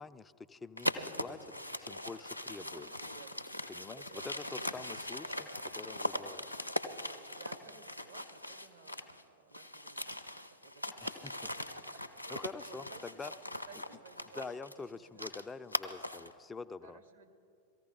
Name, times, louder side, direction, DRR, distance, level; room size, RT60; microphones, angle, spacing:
voice 1, 0.0-1.4 1.8-2.9 3.7-6.5 11.0-11.3 12.3-13.3 14.3-17.0, left 4 dB, 15° left, 12 dB, 0.4 m, -46 dB
sound 1, 0.8-9.2 9.5-16.3, left 1 dB, 90° left, 0.5 m, -40 dB
voice 2, 0.8-1.2 2.6-3.6 3.8-4.9 5.2-5.5 7.2-11.1 11.4-15.7 16.8-17.3, right 6 dB, 65° right, 6 dB, 1.2 m, -57 dB
18.0 x 14.5 x 3.8 m, 2.5 s
figure-of-eight pair, 90°, 0 cm